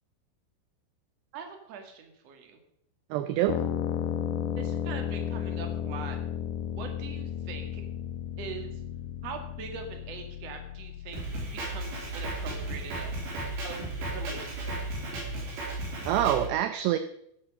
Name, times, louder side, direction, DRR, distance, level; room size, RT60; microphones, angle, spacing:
voice 1, 1.3-2.6 4.6-6.2 6.6-7.8 8.4-8.8 9.2-11.3 11.5-13.2 13.6-13.8 14.1-14.7, right 6 dB, 45° right, 4 dB, 2.2 m, -42 dB
voice 2, 3.1-3.6 16.1-17.0, right 12 dB, 80° right, 10 dB, 2.5 m, -26 dB
sound 1, 3.5-15.1, left 9 dB, 75° left, 3.1 m, -35 dB
Drum kit, 11.1-16.5, right 2 dB, 65° right, 5.8 m, -35 dB
15.5 x 10.5 x 5.3 m, 0.76 s
omnidirectional pair, 5.5 m